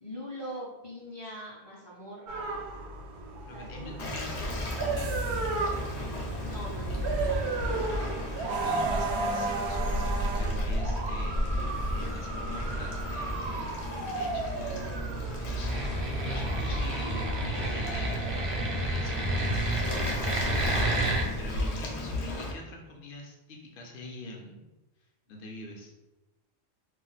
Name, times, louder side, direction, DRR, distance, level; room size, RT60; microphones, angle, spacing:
voice 1, 0.0-2.6 3.5-4.2 6.4-7.4, equal, 35° left, -6 dB, 0.4 m, -42 dB
sound 1, 2.3-21.6, right 2 dB, 85° right, 0.9 m, -34 dB
voice 2, 3.4-4.5 4.8-5.3 8.2-14.8 15.4-24.7 25.3-25.9, left 1 dB, 60° left, 1 dB, 0.8 m, -45 dB
Waves surf, 4.0-22.5, left 1 dB, 90° left, 0.9 m, -35 dB
sound 2, 15.6-21.3, right 1 dB, 45° right, 0.5 m, -30 dB
2.4 x 2.1 x 3.9 m, 1.0 s
omnidirectional pair, 1.1 m